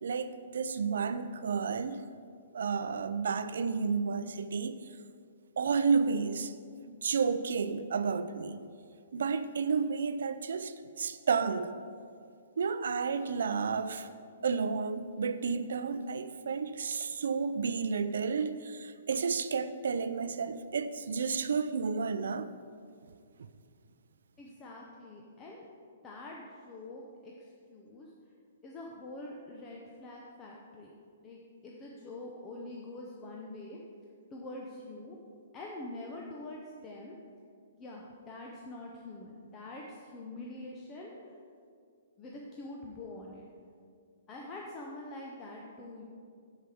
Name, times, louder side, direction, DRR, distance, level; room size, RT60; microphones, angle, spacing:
voice 1, 0.0-2.0 2.5-4.7 5.6-6.5 6.9-8.6 9.1-11.7 12.6-14.1 14.4-22.5, right 5 dB, 70° right, 12 dB, 0.5 m, -31 dB
voice 2, 24.4-25.7 26.0-27.3 27.7-28.1 28.6-30.9 31.2-33.8 34.3-35.2 35.5-37.2 37.7-41.3 42.2-43.5 44.3-46.0, left 2 dB, 15° left, -2 dB, 0.6 m, -45 dB
9.3 x 4.9 x 7.0 m, 2.2 s
hypercardioid pair, 175°, 0 cm